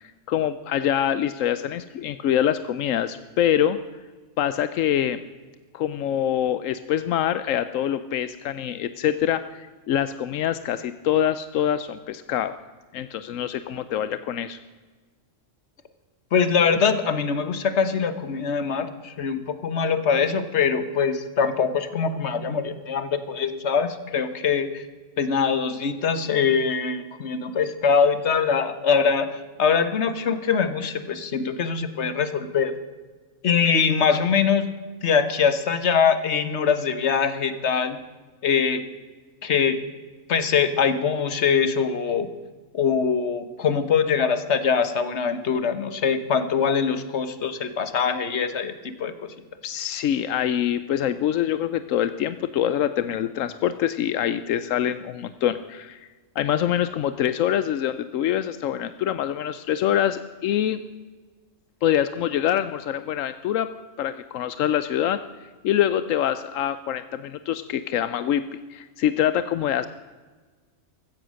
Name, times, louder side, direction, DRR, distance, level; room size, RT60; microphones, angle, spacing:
voice 1, 0.0-3.8 4.4-5.2 5.7-12.6 12.9-14.6 49.6-56.0 56.4-60.8 61.8-63.7 64.0-65.2 65.6-68.4 68.7-69.9, left 10 dB, 85° left, 13 dB, 1.0 m, -25 dB
voice 2, 16.3-24.8 25.2-32.7 33.4-34.7 35.0-38.0 38.4-38.8 39.4-39.8 40.3-42.3 42.7-49.1, left 6 dB, 60° left, 11 dB, 1.4 m, -23 dB
15.5 x 14.0 x 6.3 m, 1.4 s
omnidirectional pair, 1.3 m